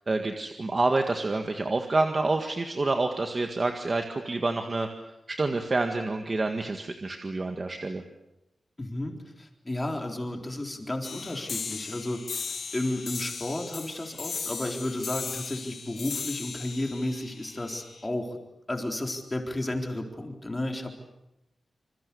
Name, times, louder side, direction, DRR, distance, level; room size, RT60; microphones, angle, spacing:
voice 1, 0.1-4.9 5.3-8.0, right 3 dB, 30° right, 5 dB, 1.8 m, -28 dB
voice 2, 8.8-12.2 12.5-18.4 18.7-21.0, left 1 dB, 15° left, 3 dB, 4.0 m, -33 dB
sound 1, 11.0-18.0, left 5 dB, 60° left, 2.7 m, -37 dB
27.5 x 27.5 x 7.1 m, 0.90 s
wide cardioid pair, 175°, 0 cm